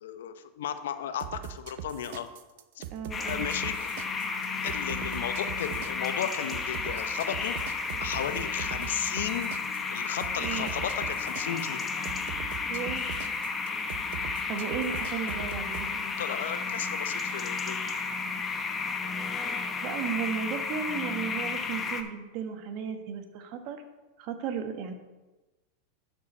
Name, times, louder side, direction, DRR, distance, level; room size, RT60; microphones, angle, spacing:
voice 1, 0.0-2.3 2.8-2.9 3.2-3.9 4.6-9.5 9.9-11.8 16.2-17.8, left 9 dB, 80° left, 10 dB, 0.7 m, -35 dB
sound 1, 1.2-15.9, right 11 dB, 70° right, 0.6 m, -41 dB
voice 2, 2.9-3.4 10.4-10.7 12.6-13.1 14.5-16.0 19.3-23.8 24.2-24.9, right 7 dB, 55° right, 7 dB, 1.2 m, -35 dB
sound 2, 3.1-22.0, left 4 dB, 25° left, 0.9 m, -32 dB
12.0 x 4.7 x 4.3 m, 1.1 s
hypercardioid pair, 115°, 0 cm